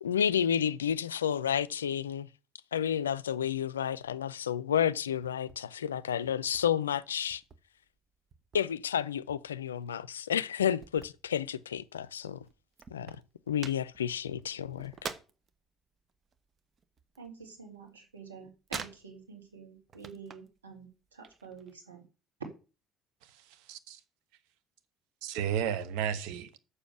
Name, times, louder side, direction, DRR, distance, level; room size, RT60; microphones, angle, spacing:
voice 1, 0.0-2.3 2.7-7.4 8.5-12.4 12.9-13.2 13.5-15.1, left 9 dB, 85° left, 0.4 m, -31 dB
sound 1, 5.2-5.6 5.9-7.6 8.0-8.9 9.3-11.9 12.1-12.2 12.4-15.6 15.9-17.9 18.1-19.4 19.8-20.6 20.9-21.7, right 6 dB, 40° right, 1.0 m, -46 dB
voice 2, 17.2-22.0, right 5 dB, 85° right, 2.4 m, -48 dB
voice 3, 23.2-24.0 25.2-26.6, right 9 dB, 70° right, 1.0 m, -34 dB
7.1 x 6.6 x 6.9 m
figure-of-eight pair, 55°, 0 cm